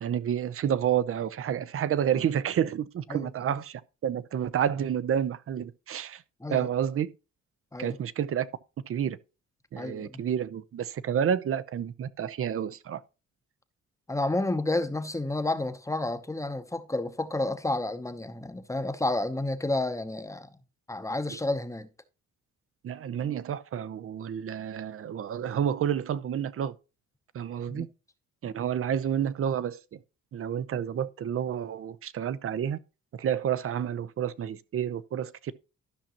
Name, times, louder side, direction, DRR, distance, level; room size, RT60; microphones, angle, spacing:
voice 1, 0.0-6.2 6.5-7.1 7.8-8.5 8.9-9.2 9.7-13.0 22.8-26.7 27.3-27.9 28.4-30.0 30.3-32.8 33.1-35.5, right 9 dB, 50° right, 0.6 m, -30 dB
voice 2, 9.8-10.2 14.1-20.5 20.9-21.9 27.7-27.9, left 2 dB, 10° left, 0.8 m, -30 dB
13.0 x 5.8 x 2.9 m
cardioid pair, 90°, 30 cm